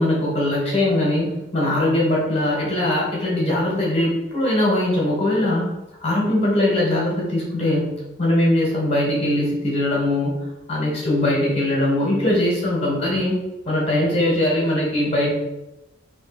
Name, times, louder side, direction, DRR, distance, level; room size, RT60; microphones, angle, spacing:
voice 1, 0.0-5.7 6.0-10.3 10.7-13.3 13.6-15.3, left 1 dB, 30° left, -4 dB, 1.6 m, -21 dB
3.6 x 3.2 x 4.3 m, 0.98 s
head